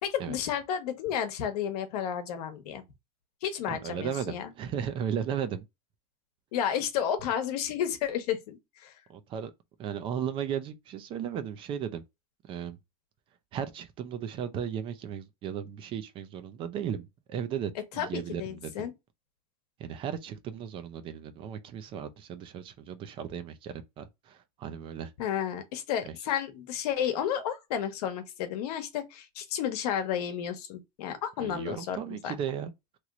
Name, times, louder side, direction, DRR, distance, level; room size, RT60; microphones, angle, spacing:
voice 1, 0.0-2.8 3.4-4.5 6.5-8.9 18.0-18.1 18.4-18.9 25.2-32.3, left 9 dB, 80° left, 1.0 m, -32 dB
voice 2, 3.7-5.7 9.1-9.5 9.8-12.0 12.4-12.8 13.5-18.9 19.8-25.1 26.0-26.1 31.4-32.7, right 8 dB, 25° right, 0.4 m, -35 dB
3.0 x 2.9 x 2.3 m
supercardioid pair, 165°, 20 cm